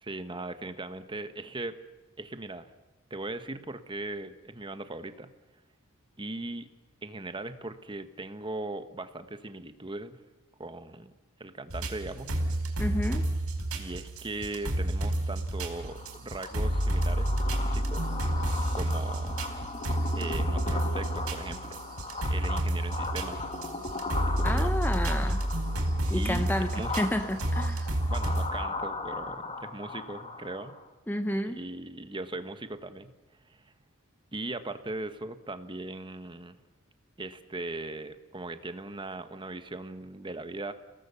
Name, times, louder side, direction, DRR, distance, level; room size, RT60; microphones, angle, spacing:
voice 1, 0.0-1.8 2.2-2.7 3.1-5.3 6.2-6.7 7.0-10.2 10.6-11.1 11.4-12.3 13.7-18.1 18.4-19.4 20.1-21.8 22.3-23.5 24.1-24.7 26.1-27.3 28.1-30.7 31.4-33.1 33.5-33.7 34.3-36.6 37.2-40.7, right 2 dB, 20° right, 10 dB, 1.3 m, -39 dB
sound 1, 11.7-28.5, right 1 dB, 75° right, 4.6 m, -30 dB
voice 2, 12.8-13.3 24.4-25.4 26.1-27.9 31.1-31.6, left 1 dB, 10° left, 9 dB, 0.8 m, -31 dB
sound 2, 15.5-30.9, left 3 dB, 30° left, 1.8 m, -38 dB
30.0 x 18.5 x 7.0 m, 1.1 s
head